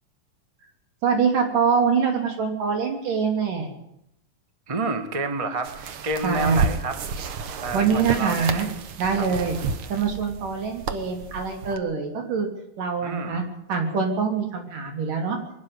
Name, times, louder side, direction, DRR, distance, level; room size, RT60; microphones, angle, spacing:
voice 1, 1.0-3.7 6.2-6.7 7.7-8.7 9.0-9.6 9.9-12.5 12.8-15.4, right 5 dB, 80° right, 3 dB, 4.8 m, -24 dB
voice 2, 4.7-7.0 7.6-8.7 9.1-9.3 13.0-13.3, right 3 dB, 15° right, 7 dB, 1.2 m, -29 dB
sound 1, 5.6-11.8, right 5 dB, 60° right, 1.5 m, -31 dB
22.0 x 12.0 x 9.6 m, 0.79 s
omnidirectional pair, 3.7 m